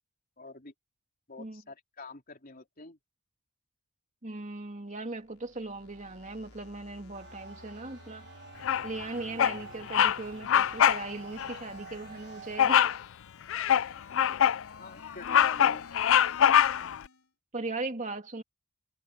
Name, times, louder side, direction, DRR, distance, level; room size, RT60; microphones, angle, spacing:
voice 1, 0.4-0.7 1.3-3.0 14.8-16.0, left 3 dB, 40° left, 4.2 m, -46 dB
voice 2, 4.2-8.3 8.8-12.8 17.5-18.4, right 2 dB, 35° right, 2.6 m, -38 dB
sound 1, 5.1-17.3, left 3 dB, 90° left, 4.2 m, -53 dB
sound 2, 7.1-13.0, right 4 dB, 55° right, 1.5 m, -50 dB
Bird vocalization bird call bird song, 8.6-9.0 9.4-9.6 9.9-10.2 10.5-11.0 11.4-11.5 12.6-13.0 13.5-14.6 15.0-17.0, left 9 dB, 65° left, 0.4 m, -23 dB
head